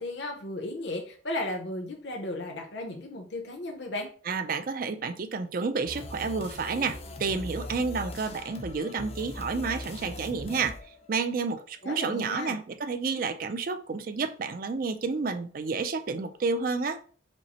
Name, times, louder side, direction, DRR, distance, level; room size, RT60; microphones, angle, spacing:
voice 1, 0.0-4.1 11.8-12.6, left 1 dB, 65° left, 2 dB, 0.7 m, -35 dB
voice 2, 4.3-10.7 11.1-17.0, right 4 dB, 45° right, 10 dB, 0.4 m, -30 dB
sound 1, 5.9-11.6, left 1 dB, 30° left, 0.4 m, -40 dB
5.2 x 2.0 x 4.2 m, 0.43 s
head